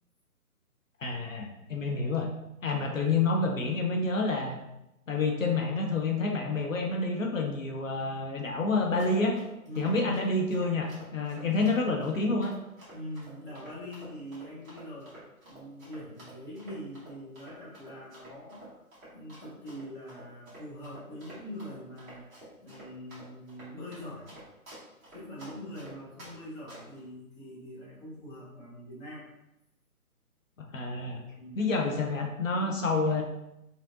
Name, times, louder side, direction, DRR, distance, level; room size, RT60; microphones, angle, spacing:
voice 1, 1.0-2.3 2.6-4.6 5.1-9.4 9.8-12.5 30.6-31.2 31.6-33.2, left 3 dB, 60° left, 2 dB, 0.7 m, -28 dB
Run, 8.8-26.3 26.7-27.0, right 1 dB, 10° right, 1.0 m, -50 dB
voice 2, 9.6-10.1 11.4-11.6 12.9-15.1 15.4-18.8 19.1-22.3 22.6-24.3 25.1-29.3 31.4-31.6 32.5-33.0, equal, 15° left, -8 dB, 1.0 m, -43 dB
5.3 x 3.2 x 2.5 m, 0.87 s
figure-of-eight pair, 145°, 44 cm